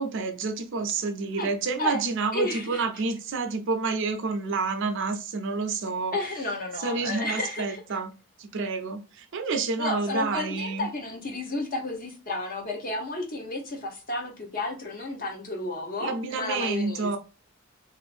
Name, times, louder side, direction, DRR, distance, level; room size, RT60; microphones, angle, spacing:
voice 1, 0.0-6.2 6.8-8.1 8.4-10.9 16.0-17.2, right 4 dB, 60° right, 0.5 m, -29 dB
voice 2, 2.3-2.8 6.1-7.8 9.8-17.2, left 2 dB, 40° left, 0.8 m, -32 dB
2.5 x 2.5 x 2.3 m
head